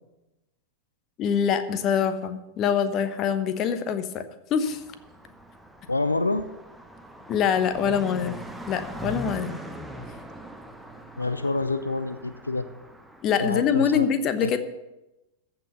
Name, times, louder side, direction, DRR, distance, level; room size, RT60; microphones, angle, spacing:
voice 1, 1.2-4.2 4.5-4.8 7.3-8.4 8.7-9.6 13.2-14.6, left 7 dB, 35° left, 11 dB, 1.0 m, -24 dB
Car passing by, 4.6-13.2, equal, 5° right, 1.1 m, -41 dB
voice 2, 5.9-6.5 11.2-12.7 13.4-14.1 14.4-14.6, left 2 dB, 80° left, 13 dB, 0.5 m, -27 dB
15.0 x 6.0 x 7.0 m, 0.98 s
figure-of-eight pair, 90°, 0 cm